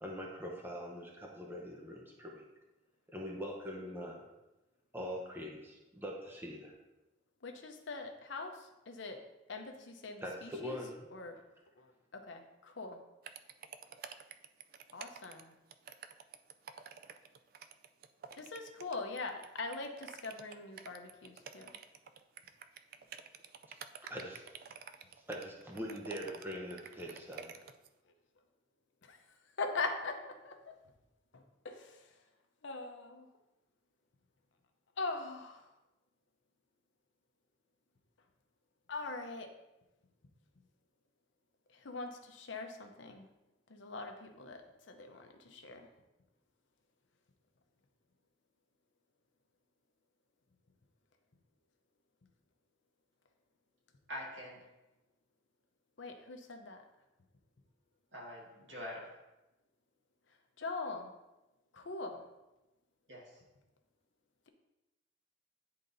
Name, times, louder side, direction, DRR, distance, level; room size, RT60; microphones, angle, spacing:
voice 1, 0.0-2.4 3.1-4.2 4.9-6.7 10.2-11.1 23.7-23.8 24.1-24.4 25.3-27.5, equal, 10° right, -1 dB, 0.8 m, -43 dB
voice 2, 7.4-9.2 9.5-11.4 11.8-13.0 14.9-15.6 18.4-21.7 27.3-27.4 29.0-29.2 29.6-30.7 31.3-32.1 32.6-33.3 35.0-35.7 38.9-39.5 41.7-43.3 43.7-45.9 56.0-56.8 60.6-61.1 61.7-62.2, left 3 dB, 75° left, 5 dB, 0.7 m, -42 dB
sound 1, 13.2-27.9, right 7 dB, 50° right, 0.3 m, -50 dB
voice 3, 54.1-54.6 58.1-59.1 63.1-63.4, left 1 dB, 75° right, -4 dB, 2.0 m, -45 dB
10.5 x 3.8 x 2.7 m, 0.99 s
head